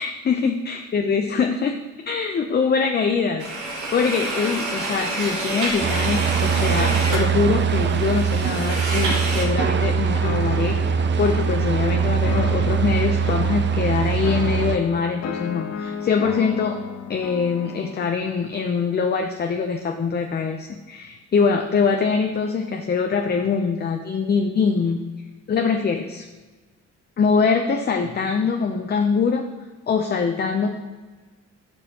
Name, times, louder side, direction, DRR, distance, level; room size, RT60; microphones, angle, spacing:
voice 1, 0.0-3.5 3.9-16.8 17.1-25.0 25.5-26.3 27.2-29.4 29.9-30.8, left 5 dB, 35° left, 5 dB, 0.6 m, -23 dB
sound 1, 3.4-9.4, right 2 dB, 80° right, 1.9 m, -28 dB
sound 2, 5.8-14.8, right 6 dB, 40° right, 0.5 m, -22 dB
sound 3, 10.2-18.0, left 6 dB, 60° left, 0.8 m, -33 dB
10.5 x 5.4 x 2.9 m, 1.4 s
cardioid pair, 90°, 30 cm